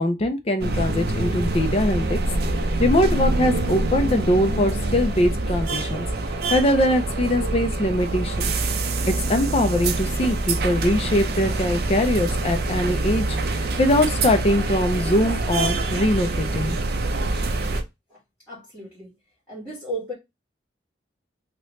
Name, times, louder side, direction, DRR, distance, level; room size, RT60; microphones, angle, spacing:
voice 1, 0.0-2.2 2.8-6.1 6.5-8.5 9.1-16.8, left 1 dB, 35° left, 0.5 m, -22 dB
sound 1, 0.6-17.8, right 2 dB, 60° right, 0.5 m, -25 dB
voice 2, 18.5-19.1 19.5-20.1, right 1 dB, 15° left, 1.8 m, -34 dB
2.9 x 2.9 x 3.1 m
head